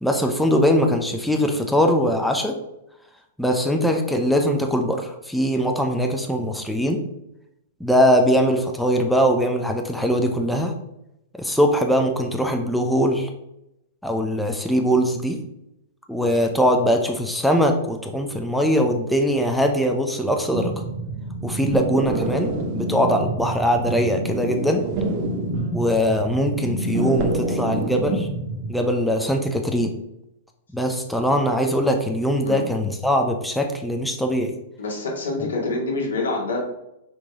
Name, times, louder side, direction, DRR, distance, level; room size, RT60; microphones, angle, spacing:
voice 1, 0.0-2.6 3.4-7.0 7.8-10.7 11.4-13.3 14.0-15.4 16.1-20.7 21.4-24.8 25.7-28.3 28.7-29.9 30.7-34.5, equal, ahead, 3 dB, 0.7 m, -21 dB
sound 1, 20.5-28.7, right 1 dB, 45° right, 1.1 m, -27 dB
voice 2, 34.8-36.6, left 3 dB, 85° left, -1 dB, 2.1 m, -26 dB
6.0 x 3.1 x 5.1 m, 0.85 s
hypercardioid pair, 120°, 0 cm